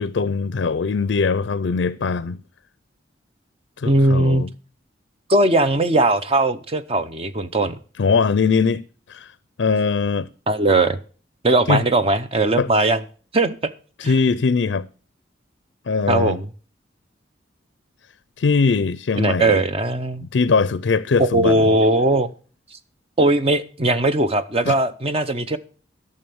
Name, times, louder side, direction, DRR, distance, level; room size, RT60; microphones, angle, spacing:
voice 1, 0.0-2.4 3.8-4.5 8.0-9.3 9.6-10.3 11.7-11.8 12.6-12.7 14.0-14.9 15.9-16.4 18.4-19.6 20.2-21.7 24.7-24.8, left 4 dB, 65° left, 0.4 m, -21 dB
voice 2, 3.9-4.4 5.3-7.8 10.5-11.0 11.4-13.0 13.3-13.6 14.0-14.1 16.1-16.5 19.2-20.3 21.2-22.3 23.2-25.6, right 2 dB, 30° right, 0.7 m, -19 dB
12.5 x 6.7 x 7.0 m
head